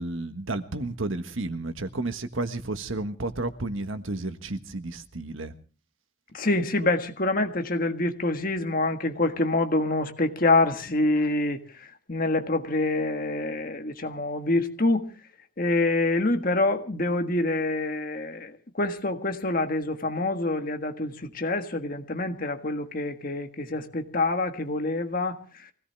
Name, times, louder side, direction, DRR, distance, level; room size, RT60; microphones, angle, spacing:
voice 1, 0.0-5.5, right 2 dB, 75° right, 1.5 m, -32 dB
voice 2, 6.3-15.1 15.6-25.4, left 2 dB, 45° left, 1.6 m, -26 dB
24.0 x 17.0 x 3.4 m
head